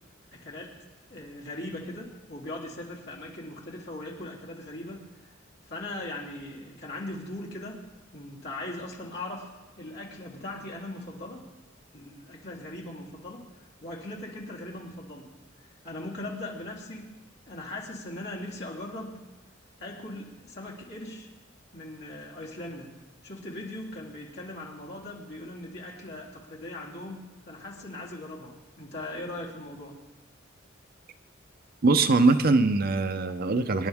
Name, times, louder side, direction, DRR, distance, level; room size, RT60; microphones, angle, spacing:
voice 1, 0.3-0.7 1.1-5.0 5.7-7.8 8.1-9.5 9.8-11.5 11.9-13.4 13.8-15.3 15.8-17.1 17.5-19.2 19.8-21.3 21.7-22.9 23.2-30.0, left 1 dB, 55° left, -4 dB, 3.4 m, -39 dB
voice 2, 31.8-33.9, right 3 dB, 50° right, 9 dB, 0.7 m, -22 dB
25.5 x 10.5 x 3.6 m, 1.2 s
head